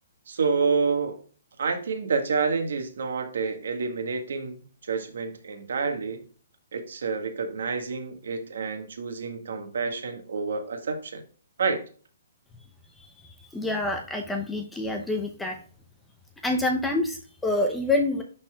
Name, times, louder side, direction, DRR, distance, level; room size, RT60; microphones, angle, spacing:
voice 1, 0.3-1.2 1.6-6.2 6.7-11.2 11.6-11.8, right 4 dB, 75° right, 6 dB, 1.5 m, -28 dB
voice 2, 13.0-15.6 16.4-18.2, left 2 dB, 5° left, 3 dB, 0.6 m, -27 dB
11.5 x 4.2 x 2.3 m, 0.40 s
hypercardioid pair, 165°, 0 cm